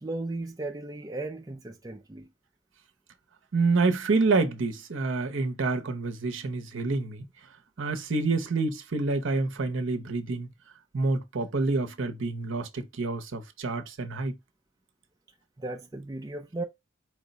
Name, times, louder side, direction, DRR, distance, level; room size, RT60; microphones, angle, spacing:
voice 1, 0.0-2.3 15.6-16.6, right 2 dB, 20° right, 0.4 m, -36 dB
voice 2, 3.5-7.3 7.8-10.5 10.9-14.4, right 3 dB, 70° right, 0.7 m, -27 dB
4.5 x 2.2 x 3.9 m
head